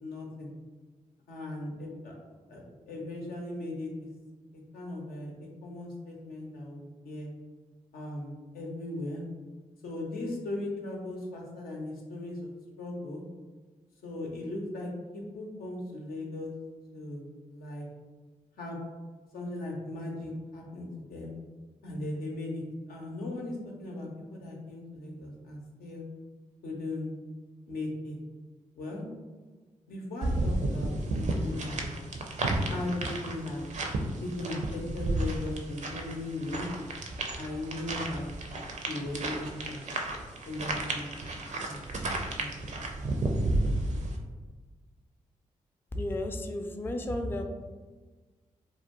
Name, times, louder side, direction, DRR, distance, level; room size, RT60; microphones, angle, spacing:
voice 1, 0.0-0.5 1.3-2.1 2.5-4.1 4.5-7.3 7.9-9.2 9.8-12.5 12.8-13.2 14.0-16.5 16.9-17.2 17.5-17.9 18.6-18.8 19.3-21.3 21.8-26.1 26.6-27.1 27.7-28.2 28.8-29.1 29.9-32.3 32.7-33.6 34.2-36.7 37.4-38.3 38.9-39.8 40.5-41.1 41.6-41.8 42.4-42.9, left 2 dB, 85° left, -1 dB, 0.5 m, -38 dB
sound 1, 30.2-44.2, right 2 dB, 55° right, 0.5 m, -32 dB
voice 2, 45.9-47.4, left 1 dB, 15° left, 4 dB, 0.3 m, -33 dB
2.5 x 2.1 x 2.9 m, 1.3 s
supercardioid pair, 50°, 15 cm